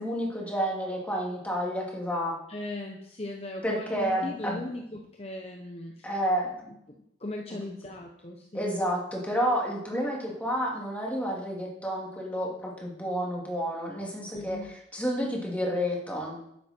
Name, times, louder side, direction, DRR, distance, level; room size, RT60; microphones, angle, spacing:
voice 1, 0.0-2.4 3.6-4.7 6.0-6.5 7.5-7.6 8.5-16.4, equal, 10° left, -3 dB, 2.8 m, -30 dB
voice 2, 2.5-6.1 6.7-6.8 7.2-8.7 14.3-14.7, left 1 dB, 30° left, 1 dB, 1.0 m, -38 dB
12.0 x 10.0 x 4.6 m, 0.77 s
head